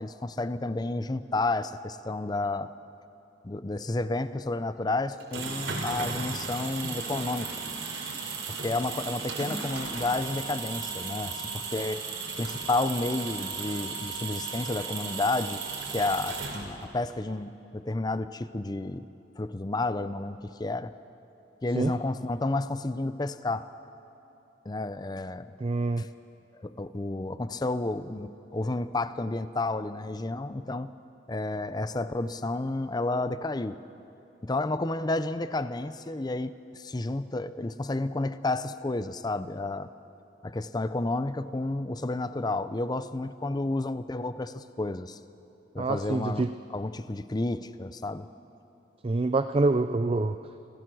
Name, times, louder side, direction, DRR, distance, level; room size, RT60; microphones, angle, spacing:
voice 1, 0.0-2.7 3.4-7.6 8.5-12.0 12.4-15.6 15.9-19.1 19.4-20.9 21.6-23.7 24.7-25.5 26.0-26.1 26.6-30.9 31.3-33.8 34.4-39.9 40.4-45.2 45.7-48.3, left 2 dB, 20° left, 13 dB, 0.5 m, -31 dB
sound 1, 5.1-17.0, right 4 dB, 85° right, 3.5 m, -35 dB
voice 2, 25.6-26.1 45.8-46.5 49.0-50.4, right 3 dB, 30° right, 9 dB, 0.4 m, -26 dB
28.5 x 16.0 x 6.3 m, 2.9 s
head